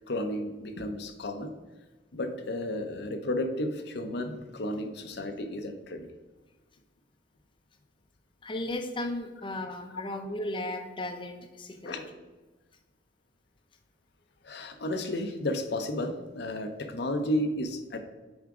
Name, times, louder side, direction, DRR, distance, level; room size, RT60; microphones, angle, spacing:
voice 1, 0.1-1.5 2.1-6.1 11.8-12.1 14.4-18.0, left 1 dB, 65° left, 6 dB, 0.7 m, -32 dB
voice 2, 8.4-12.0, left 1 dB, 25° left, 4 dB, 0.6 m, -35 dB
7.3 x 3.5 x 4.8 m, 1.2 s
head